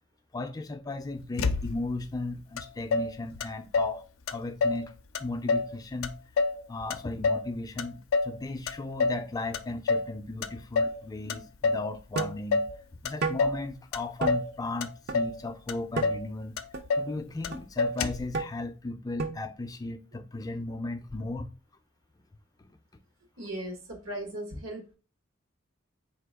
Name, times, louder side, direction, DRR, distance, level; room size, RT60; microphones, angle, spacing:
voice 1, 0.3-4.9 5.2-6.2 6.7-12.7 13.0-16.6 16.9-21.5 22.6-22.8, left 2 dB, 20° left, 0.3 m, -36 dB
Motor vehicle (road), 1.4-2.0 2.6-2.7 2.9-4.0 4.3-4.9 5.1-5.7 6.0-7.5 7.8-8.4 8.7-9.2 9.5-10.1 10.4-11.0 11.3-11.9 12.2-12.8 13.0-13.6 13.9-14.5 14.8-15.4 15.7-15.8 16.0-16.3 16.6-17.1 17.4-17.5 17.8-18.3, left 4 dB, 85° left, 0.4 m, -28 dB
sound 1, 12.2-12.4 13.2-13.4 14.2-14.4 15.1-15.2 16.0-16.1 16.7-16.8 17.5-17.6 18.3-18.5 19.2-19.4, right 4 dB, 50° right, 0.5 m, -30 dB
voice 2, 23.4-25.0, right 1 dB, 85° right, 1.3 m, -37 dB
4.1 x 2.9 x 3.4 m
head